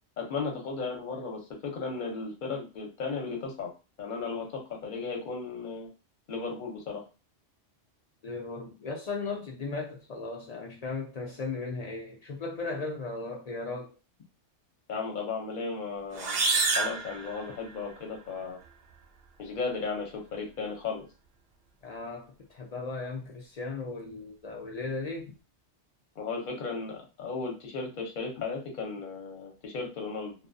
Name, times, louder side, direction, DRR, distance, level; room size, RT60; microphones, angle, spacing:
voice 1, 0.2-3.7 4.0-5.9 6.3-7.0 14.9-16.4 16.8-18.6 19.4-21.0 26.2-30.3, left 4 dB, 50° left, 0 dB, 0.8 m, -35 dB
voice 2, 8.2-13.9 21.8-25.3, left 3 dB, 65° left, -1 dB, 0.4 m, -36 dB
sound 1, 16.1-18.0, right 4 dB, 65° right, 0.7 m, -29 dB
2.3 x 2.3 x 2.5 m, 0.31 s
omnidirectional pair, 1.2 m